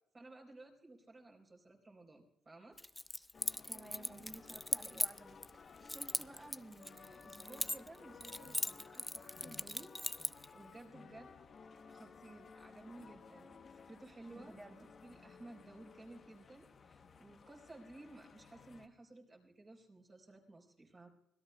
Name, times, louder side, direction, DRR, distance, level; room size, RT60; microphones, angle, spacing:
voice 1, 0.1-2.8 5.8-9.9 10.2-11.4 11.9-21.1, right 2 dB, 30° right, 0 dB, 4.0 m, -56 dB
Keys jangling, 2.8-5.5 5.9-8.0 8.2-10.5, left 1 dB, 5° left, 0.4 m, -39 dB
sound 1, 3.3-18.9, left 5 dB, 45° left, 0.9 m, -57 dB
voice 2, 3.7-5.4 14.3-14.9, right 1 dB, 15° right, 5 dB, 1.4 m, -53 dB
25.5 x 17.5 x 2.2 m, 0.93 s
cardioid pair, 90°, 0 cm